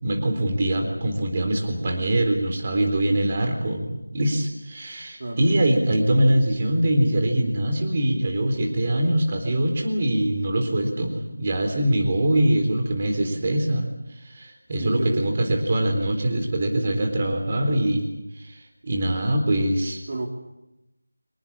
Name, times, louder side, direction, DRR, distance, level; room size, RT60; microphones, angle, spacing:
voice 1, 0.0-18.1 18.3-20.0, right 1 dB, 30° right, 3 dB, 3.9 m, -23 dB
voice 2, 14.8-15.3 20.1-20.3, right 2 dB, 45° right, 1 dB, 3.5 m, -30 dB
26.0 x 20.0 x 8.7 m, 0.93 s
figure-of-eight pair, 175°, 0 cm